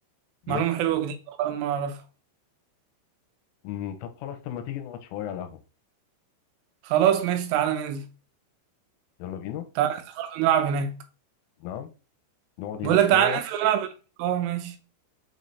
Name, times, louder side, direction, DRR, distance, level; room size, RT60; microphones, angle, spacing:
voice 1, 0.5-2.0 6.8-8.1 9.8-11.0 12.8-13.9 14.2-14.8, right 10 dB, 80° right, 3.2 m, -24 dB
voice 2, 3.6-5.6 9.2-9.7 11.6-11.9 12.6-13.4, left 10 dB, 90° left, 3.3 m, -34 dB
7.3 x 3.2 x 4.0 m
omnidirectional pair, 5.8 m